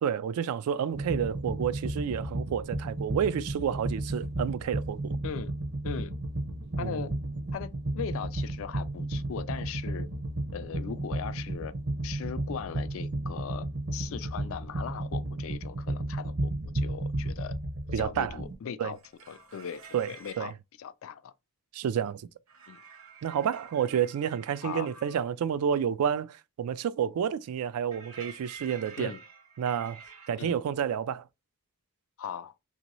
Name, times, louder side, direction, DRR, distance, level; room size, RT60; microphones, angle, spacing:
voice 1, 0.0-5.2 6.8-7.0 17.9-18.4 18.8-18.9 19.9-20.1 20.4-20.5 21.7-22.3 23.2-29.2 29.6-30.0 30.3-31.3, right 8 dB, 85° right, 0.3 m, -30 dB
sound 1, 0.9-18.5, right 1 dB, 45° right, 0.6 m, -33 dB
voice 2, 5.8-6.1 6.8-7.1 7.5-10.1 10.5-11.7 12.0-13.7 13.9-17.6 17.9-19.0 19.3-19.8 20.1-20.5 20.8-21.3 22.7-22.8 24.6-24.9 29.0-29.2 30.4-30.6 32.2-32.5, left 7 dB, 60° left, 0.3 m, -39 dB
sound 2, 18.9-20.5 22.5-25.3 27.9-30.4, right 5 dB, 65° right, 1.0 m, -49 dB
3.0 x 2.7 x 3.0 m
head